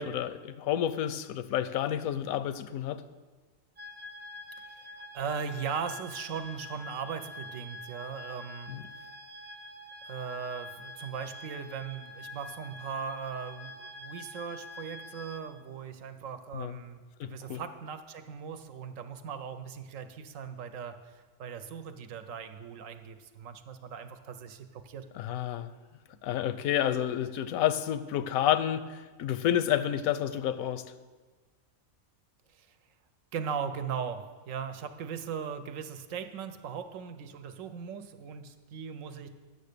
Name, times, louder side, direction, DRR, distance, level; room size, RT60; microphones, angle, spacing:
voice 1, 0.0-3.0 8.7-8.8 16.5-16.8 17.2-17.6 25.2-25.7 26.2-30.8, left 10 dB, 85° left, 13 dB, 1.0 m, -30 dB
sound 1, 3.8-15.4, left 2 dB, 35° right, 0.6 m, -46 dB
voice 2, 5.0-8.7 10.0-25.0 32.5-32.7 33.3-39.3, right 6 dB, 70° right, 9 dB, 1.0 m, -38 dB
9.2 x 6.5 x 6.7 m, 1.3 s
omnidirectional pair, 1.4 m